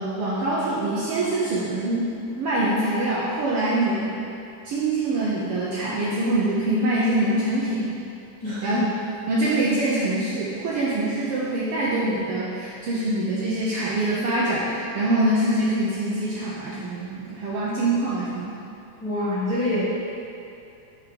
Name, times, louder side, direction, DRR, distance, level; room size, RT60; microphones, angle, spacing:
voice 1, 0.0-4.2 4.6-8.0 8.6-8.8 9.3-18.6, right 1 dB, 70° right, -7 dB, 1.4 m, -24 dB
voice 2, 8.4-8.9 19.0-19.8, left 1 dB, 40° left, -11 dB, 1.4 m, -26 dB
7.5 x 4.6 x 5.2 m, 2.7 s
omnidirectional pair, 3.6 m